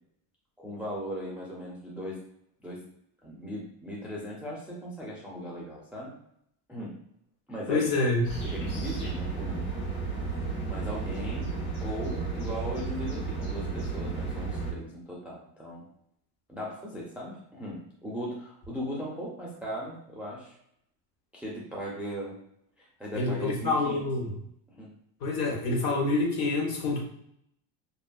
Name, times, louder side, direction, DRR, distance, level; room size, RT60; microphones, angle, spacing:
voice 1, 0.6-2.2 2.6-2.8 3.2-6.1 6.7-7.0 7.5-7.9 8.5-9.7 10.6-15.8 16.5-20.5 21.3-22.4 22.8-24.3 24.7-24.9, equal, 5° right, -5 dB, 0.5 m, -38 dB
voice 2, 7.7-8.3 23.1-24.3 25.2-27.0, left 2 dB, 45° left, -1 dB, 1.0 m, -27 dB
sound 1, 8.2-14.7, right 4 dB, 85° left, 1.1 m, -33 dB
2.6 x 2.4 x 2.3 m, 0.72 s
supercardioid pair, 100°, 49 cm